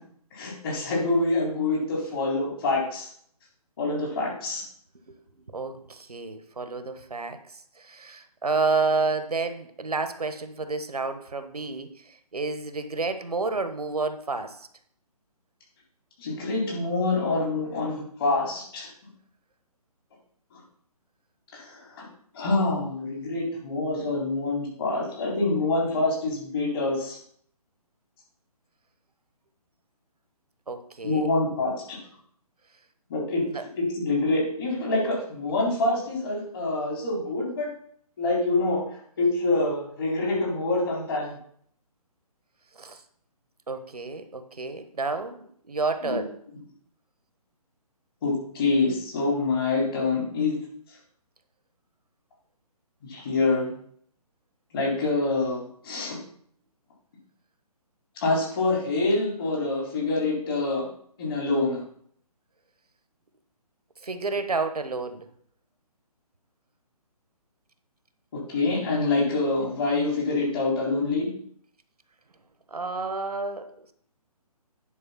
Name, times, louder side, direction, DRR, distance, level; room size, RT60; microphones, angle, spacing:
voice 1, 0.3-3.1 3.8-4.6 16.2-18.9 20.5-20.6 21.5-22.1 22.3-27.2 31.0-32.0 33.1-33.4 33.8-37.7 38.2-38.8 39.2-41.4 46.0-46.2 48.2-50.6 53.0-53.7 54.7-56.2 58.2-60.9 61.2-61.8 68.3-71.3, left 3 dB, 35° left, -2 dB, 3.9 m, -26 dB
voice 2, 5.5-14.7 30.7-31.3 33.5-33.6 42.8-43.0 43.7-46.3 64.0-65.3 72.7-73.9, right 3 dB, 75° right, 10 dB, 1.1 m, -30 dB
10.0 x 4.7 x 5.8 m, 0.63 s
figure-of-eight pair, 140°, 20 cm